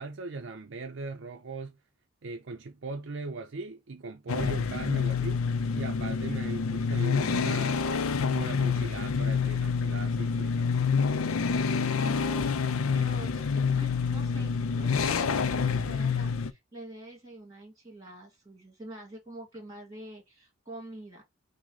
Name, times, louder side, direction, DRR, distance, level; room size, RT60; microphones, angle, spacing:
voice 1, 0.0-1.8 2.2-5.4 5.7-7.9 8.3-10.7, right 3 dB, 60° right, 0.6 m, -39 dB
sound 1, 4.3-16.5, left 5 dB, 85° left, 0.5 m, -27 dB
voice 2, 12.0-21.2, right 1 dB, 20° right, 2.2 m, -46 dB
6.0 x 2.1 x 4.0 m
head